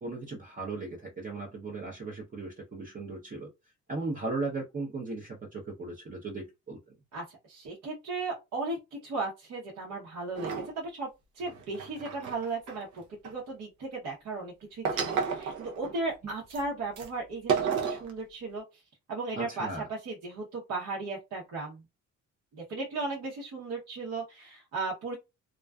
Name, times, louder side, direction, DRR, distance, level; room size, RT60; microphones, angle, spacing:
voice 1, 0.0-3.5 3.9-6.8 19.4-19.8, right 3 dB, 25° right, 0.6 m, -37 dB
voice 2, 7.1-11.1 11.3-18.8 19.1-21.8 22.5-25.2, right 3 dB, 65° right, 0.9 m, -36 dB
sound 1, 10.3-10.7 11.4-13.3 14.8-16.0 16.5-16.6 17.0-17.1 17.5-18.1, right 6 dB, 85° right, 0.6 m, -32 dB
2.4 x 2.3 x 2.2 m
cardioid pair, 90°, 30 cm